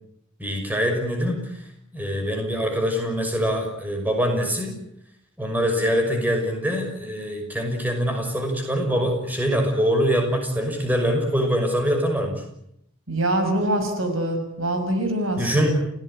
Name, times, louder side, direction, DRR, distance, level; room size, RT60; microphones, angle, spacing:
voice 1, 0.4-1.6 1.9-4.8 5.4-12.4 15.4-15.7, equal, 10° right, 3 dB, 5.9 m, -24 dB
voice 2, 13.1-15.7, right 1 dB, 80° right, 7 dB, 6.5 m, -24 dB
30.0 x 17.0 x 10.0 m, 0.77 s
head